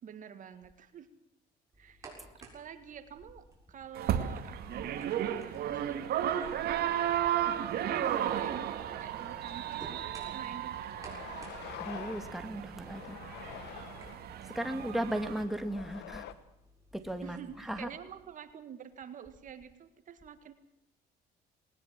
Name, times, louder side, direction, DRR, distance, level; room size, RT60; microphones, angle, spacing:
voice 1, 0.0-1.1 1.8-6.3 7.4-11.3 14.4-14.8 17.2-20.5, right 8 dB, 50° right, 10 dB, 1.8 m, -48 dB
sound 1, 1.7-18.2, right 2 dB, 20° right, 6.9 m, -58 dB
sound 2, 3.9-15.4, right 10 dB, 70° right, 2.2 m, -34 dB
sound 3, 8.1-8.7 9.2-9.3 10.4-10.5 10.9-12.4 12.8-14.2 15.1-16.3, left 12 dB, 85° left, 1.5 m, -47 dB
voice 2, 11.8-13.2 14.5-16.2 16.9-17.9, right 1 dB, ahead, 7 dB, 2.1 m, -36 dB
20.5 x 19.5 x 7.5 m, 0.82 s
cardioid pair, 110°, 17 cm